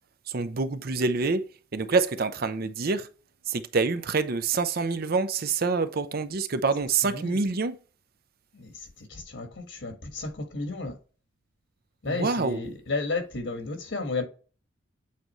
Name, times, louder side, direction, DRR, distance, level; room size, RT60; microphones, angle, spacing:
voice 1, 0.3-3.1 3.5-7.7 12.1-12.6, right 4 dB, 50° right, 0.6 m, -26 dB
voice 2, 7.0-7.4 8.5-11.0 12.0-14.2, left 3 dB, 70° left, 1.5 m, -33 dB
8.4 x 3.9 x 3.1 m
head